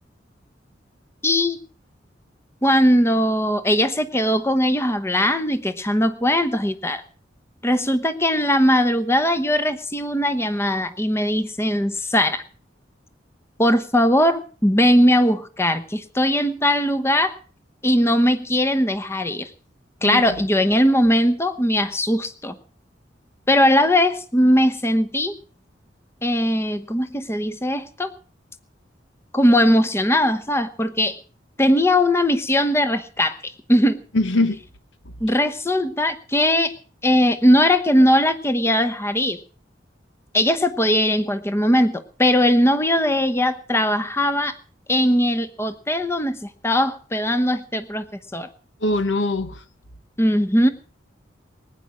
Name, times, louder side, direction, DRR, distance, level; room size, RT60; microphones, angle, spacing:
voice 1, 1.2-1.6 2.6-7.0 7.6-12.4 13.6-17.3 17.8-19.5 20.0-22.5 23.5-25.3 26.2-28.1 29.3-31.2 31.6-34.0 35.2-36.7 37.0-39.4 40.3-44.5 44.9-48.1 48.3-48.5 50.2-50.7, equal, 15° left, 1.0 m, -19 dB
voice 2, 20.0-20.4 34.1-34.6 48.8-49.6, left 2 dB, 85° left, 1.3 m, -22 dB
19.5 x 9.8 x 6.2 m
head